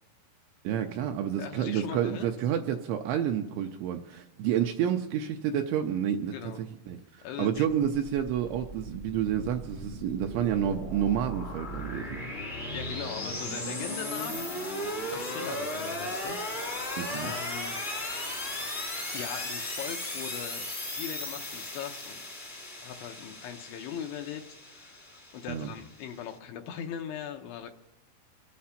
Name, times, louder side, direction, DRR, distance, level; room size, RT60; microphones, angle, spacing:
voice 1, 0.6-12.1 17.0-17.3 25.5-25.7, right 9 dB, 80° right, 4 dB, 2.7 m, -29 dB
voice 2, 1.4-2.3 6.3-6.6 7.2-7.7 12.7-14.6 15.1-17.9 19.1-20.7 21.0-22.2 22.8-27.7, left 9 dB, 80° left, 4 dB, 2.8 m, -40 dB
sound 1, 8.0-26.3, left 1 dB, 35° left, 1.0 m, -36 dB
25.5 x 8.6 x 5.7 m, 1.0 s
omnidirectional pair, 5.9 m